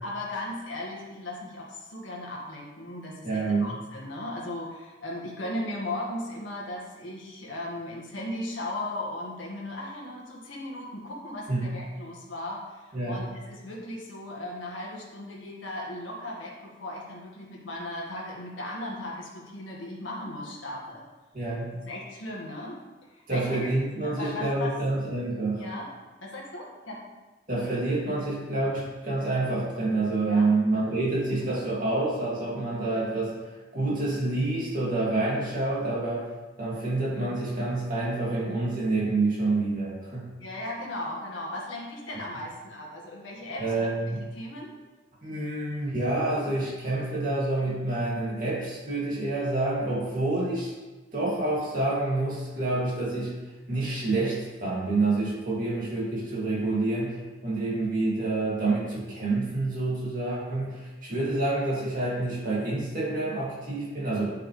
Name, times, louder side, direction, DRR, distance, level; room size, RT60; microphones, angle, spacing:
voice 1, 0.0-21.0 21.7-22.8 23.1-23.7 24.0-24.8 25.6-25.9 26.2-27.0 30.2-30.5 40.4-43.9 44.3-44.7, left 1 dB, 85° left, -4 dB, 1.7 m, -37 dB
voice 2, 3.2-3.7 11.5-11.7 12.9-13.3 21.3-21.7 23.3-25.6 27.5-36.3 36.6-40.3 43.6-44.2 45.2-50.7 51.1-53.3 53.7-64.2, right 2 dB, 45° right, -6 dB, 2.5 m, -28 dB
9.1 x 5.7 x 3.3 m, 1.2 s
head